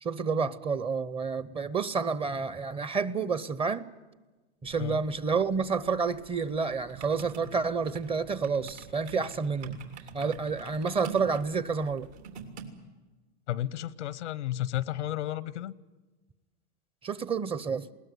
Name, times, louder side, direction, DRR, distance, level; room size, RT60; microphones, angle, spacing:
voice 1, 0.0-3.9 4.6-9.8 10.1-12.1 17.0-17.9, right 5 dB, 15° right, 0.7 m, -29 dB
sound 1, 4.6-12.7, right 5 dB, 75° right, 3.2 m, -46 dB
voice 2, 13.5-15.7, left 13 dB, 90° left, 0.9 m, -32 dB
20.5 x 19.0 x 9.4 m
hypercardioid pair, 125°, 34 cm